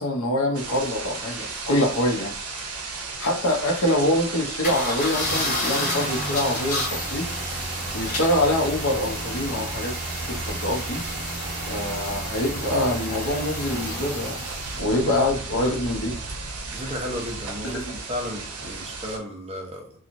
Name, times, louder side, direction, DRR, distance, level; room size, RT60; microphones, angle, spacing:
voice 1, 0.0-2.8 3.2-7.3 7.9-9.9 10.3-11.0 11.7-14.4 14.7-16.2 17.6-17.8, left 1 dB, 65° left, 0.8 m, -25 dB
sound 1, 0.5-19.2, right 4 dB, 85° right, 0.6 m, -34 dB
sound 2, 4.6-14.8, left 1 dB, 35° left, 1.2 m, -31 dB
voice 2, 16.7-19.9, equal, 30° right, 0.7 m, -34 dB
3.0 x 2.3 x 2.6 m
head